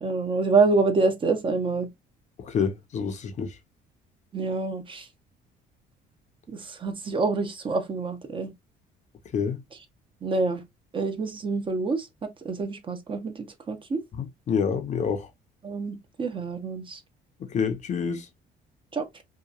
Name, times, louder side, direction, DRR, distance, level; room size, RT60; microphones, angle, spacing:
voice 1, 0.0-1.9 4.3-5.1 6.5-8.5 10.2-10.6 10.9-14.0 15.6-17.0 18.9-19.1, right 3 dB, 30° right, 0.6 m, -27 dB
voice 2, 2.4-3.6 9.3-9.6 14.2-15.3 17.5-18.3, left 6 dB, 45° left, 0.6 m, -27 dB
2.8 x 2.2 x 2.4 m
cardioid pair, 110°, 17 cm